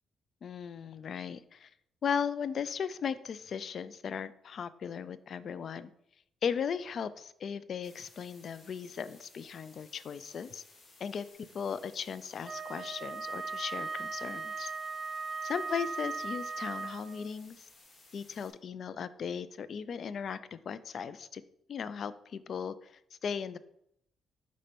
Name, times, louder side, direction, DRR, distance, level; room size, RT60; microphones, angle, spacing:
voice 1, 0.4-1.7 2.0-5.9 6.4-10.6 11.0-14.7 15.4-17.6 18.1-21.4 21.7-22.9 23.2-23.6, left 7 dB, 55° left, 15 dB, 0.4 m, -37 dB
sound 1, 7.8-18.5, left 2 dB, 40° left, 1.8 m, -59 dB
Wind instrument woodwind instrument, 12.4-17.3, right 4 dB, 30° right, 0.6 m, -38 dB
5.1 x 4.3 x 5.1 m, 0.73 s
cardioid pair, 90°, 0 cm